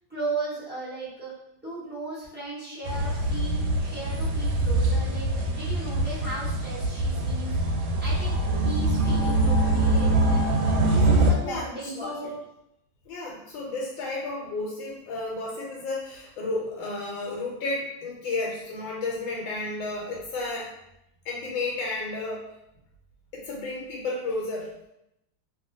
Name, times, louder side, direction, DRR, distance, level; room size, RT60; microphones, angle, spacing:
voice 1, 0.1-1.3 1.6-7.6 8.0-10.4 10.9-12.3, right 2 dB, 15° right, -11 dB, 0.4 m, -36 dB
sound 1, 2.9-11.3, right 2 dB, 85° right, 1.3 m, -24 dB
voice 2, 11.4-12.4 13.1-20.7 21.2-22.5 23.3-24.7, left 2 dB, 90° left, -3 dB, 1.4 m, -32 dB
2.9 x 2.4 x 2.6 m, 0.82 s
omnidirectional pair, 2.0 m